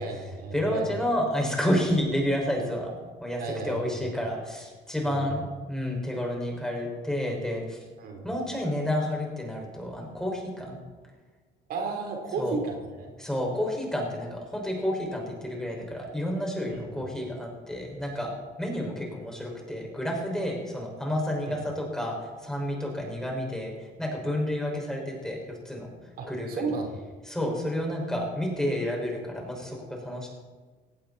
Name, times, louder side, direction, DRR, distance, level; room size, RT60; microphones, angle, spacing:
voice 1, 0.0-0.9 3.4-4.0 5.0-5.4 8.0-8.3 11.7-13.1 16.7-16.9 21.5-21.6 26.2-27.0, right 3 dB, 65° right, 2 dB, 3.9 m, -33 dB
voice 2, 0.5-2.9 3.2-7.8 8.2-10.8 12.4-12.6 13.2-18.3 18.6-25.9 26.3-26.7 27.3-30.3, equal, 5° left, 0 dB, 6.0 m, -30 dB
18.0 x 17.0 x 4.4 m, 1.4 s
cardioid pair, 110°, 17 cm